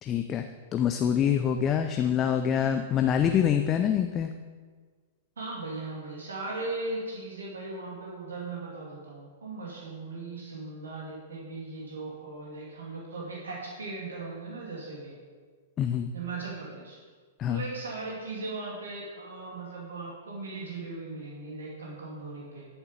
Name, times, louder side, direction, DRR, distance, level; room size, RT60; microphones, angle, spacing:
voice 1, 0.0-0.4 0.7-4.3 15.8-16.1 17.4-17.6, left 8 dB, 25° left, 6 dB, 0.5 m, -25 dB
voice 2, 5.4-15.2 16.1-17.0 17.5-22.7, right 3 dB, 70° right, -3 dB, 2.6 m, -38 dB
12.0 x 7.2 x 5.2 m, 1.5 s
figure-of-eight pair, 105°, 0 cm